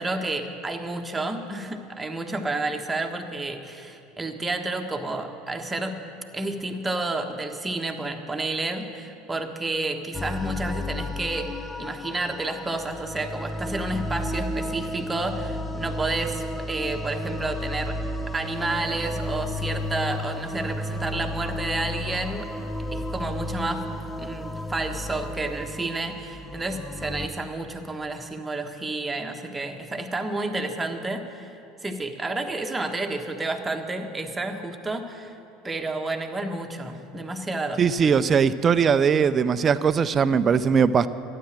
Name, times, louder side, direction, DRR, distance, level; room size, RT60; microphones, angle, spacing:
voice 1, 0.0-6.0 6.3-18.0 18.3-22.5 22.9-23.9 24.2-31.5 31.8-35.4 35.6-37.8, right 2 dB, 15° right, 4 dB, 1.4 m, -30 dB
sound 1, 10.1-27.3, left 1 dB, 10° left, 0.8 m, -32 dB
voice 2, 37.8-41.1, right 6 dB, 35° right, 14 dB, 0.5 m, -20 dB
13.0 x 9.9 x 7.5 m, 2.7 s
hypercardioid pair, 80°, 0 cm